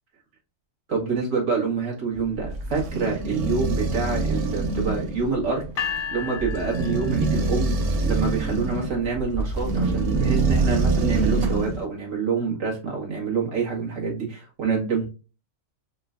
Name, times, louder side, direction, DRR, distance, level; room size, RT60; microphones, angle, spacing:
voice 1, 0.9-7.8 8.1-15.1, right 5 dB, 85° right, -3 dB, 1.8 m, -27 dB
sound 1, 2.1-11.8, right 3 dB, 65° right, 0.9 m, -25 dB
sound 2, 5.6-7.5 8.9-9.0 9.5-10.0 10.4-10.5 10.9-11.7, equal, 45° right, 0.5 m, -39 dB
sound 3, 5.8-7.9, left 7 dB, 65° left, 0.7 m, -33 dB
5.0 x 2.2 x 2.4 m, 0.32 s
omnidirectional pair, 1.3 m